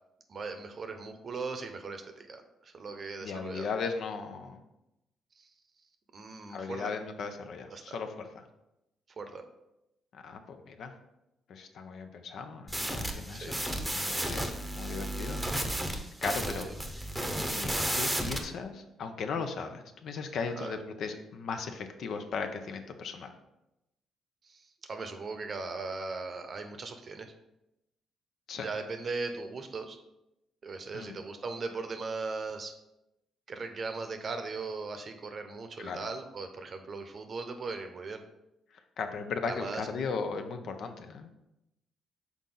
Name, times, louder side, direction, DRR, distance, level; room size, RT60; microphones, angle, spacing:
voice 1, 0.3-3.7 5.4-5.5 6.1-6.9 7.7-8.0 9.2-9.4 13.3-13.6 16.5-16.8 20.6-20.8 24.4-27.3 28.5-30.0 30.6-32.7 33.5-38.2 39.5-39.8, right 4 dB, 45° right, 7 dB, 0.8 m, -38 dB
voice 2, 3.2-4.6 6.5-8.4 10.1-10.9 11.5-13.6 13.9-14.5 14.7-15.5 16.2-16.7 17.0-17.1 17.5-23.3 28.5-28.7 30.9-31.1 35.8-36.0 39.0-41.3, left 5 dB, 65° left, 6 dB, 0.7 m, -37 dB
sound 1, 12.7-18.4, right 1 dB, 5° right, 0.8 m, -33 dB
6.0 x 4.1 x 3.9 m, 0.90 s
cardioid pair, 90°, 0 cm